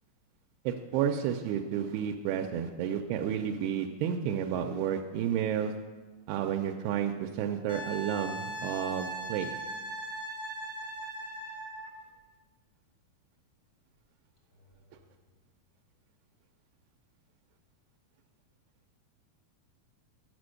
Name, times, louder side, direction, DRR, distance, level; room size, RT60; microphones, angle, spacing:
voice 1, 0.7-5.7 6.3-9.5, right 9 dB, 85° right, 4 dB, 2.5 m, -31 dB
Wind instrument woodwind instrument, 7.7-11.9 14.6-14.7, right 2 dB, 80° left, 0.8 m, -39 dB
11.0 x 5.2 x 6.3 m, 1.3 s
omnidirectional pair, 4.4 m